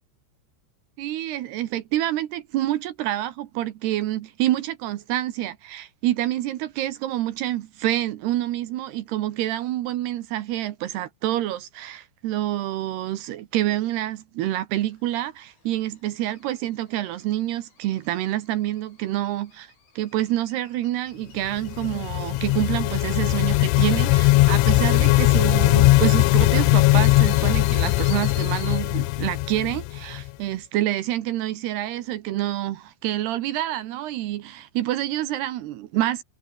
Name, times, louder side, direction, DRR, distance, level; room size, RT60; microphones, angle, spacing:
voice 1, 1.0-36.2, right 14 dB, 70° right, 2.6 m, -27 dB
sound 1, 14.8-28.8, left 5 dB, 65° left, 10.0 m, -50 dB
sound 2, 21.5-30.3, left 19 dB, 85° left, 3.2 m, -19 dB
omnidirectional pair, 5.9 m